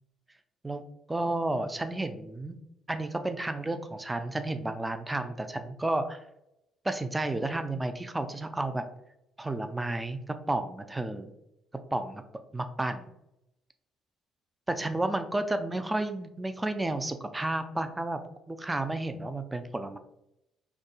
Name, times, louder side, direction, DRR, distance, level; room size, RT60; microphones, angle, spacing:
voice 1, 1.1-2.6 2.9-6.2 6.8-8.8 9.4-11.3 11.9-12.2 12.5-13.1 14.7-18.2 18.5-20.0, right 2 dB, 15° right, 9 dB, 0.3 m, -31 dB
3.5 x 2.2 x 2.3 m, 0.85 s
figure-of-eight pair, 45°, 0 cm